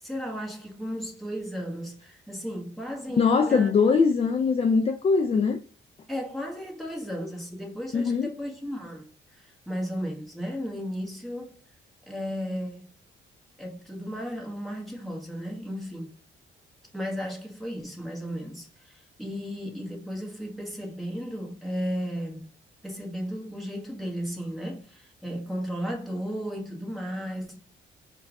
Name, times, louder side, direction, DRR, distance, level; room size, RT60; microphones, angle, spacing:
voice 1, 0.0-3.7 6.1-11.6 12.1-12.9 13.6-16.2 16.9-22.5 22.8-27.6, equal, ahead, 1.3 m, -34 dB
voice 2, 3.2-5.6 7.9-8.3, left 5 dB, 30° left, 0.4 m, -22 dB
4.4 x 2.4 x 3.5 m
cardioid pair, 90°, 20 cm